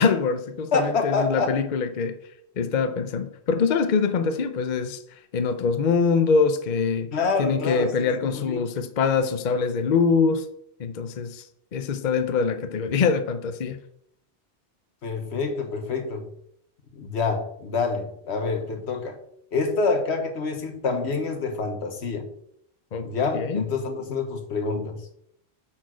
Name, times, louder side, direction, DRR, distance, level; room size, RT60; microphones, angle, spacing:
voice 1, 0.0-2.2 2.6-5.0 5.3-7.1 7.4-10.5 10.8-11.5 11.7-13.8 22.9-23.1 23.3-23.7, left 5 dB, 50° left, 9 dB, 0.8 m, -24 dB
voice 2, 0.7-1.5 7.1-8.6 15.0-16.3 16.9-19.2 19.5-22.3 23.0-25.0, left 4 dB, 80° left, 6 dB, 1.4 m, -27 dB
8.6 x 4.4 x 6.1 m, 0.72 s
omnidirectional pair, 1.1 m